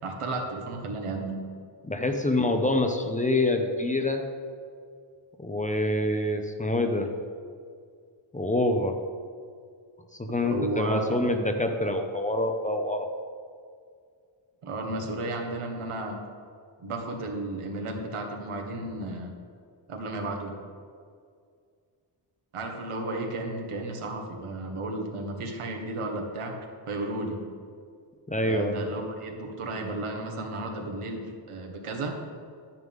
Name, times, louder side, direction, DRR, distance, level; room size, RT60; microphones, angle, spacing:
voice 1, 0.0-1.4 10.5-11.2 14.6-16.2 16.8-19.3 19.9-20.5 22.5-26.5 26.9-27.4 28.4-32.1, right 2 dB, 85° right, 1 dB, 1.7 m, -33 dB
voice 2, 1.8-4.2 5.4-7.1 8.3-9.0 10.2-13.1 28.3-28.8, left 1 dB, 15° left, 4 dB, 0.7 m, -26 dB
11.0 x 9.6 x 3.7 m, 2.2 s
wide cardioid pair, 120°, 50 cm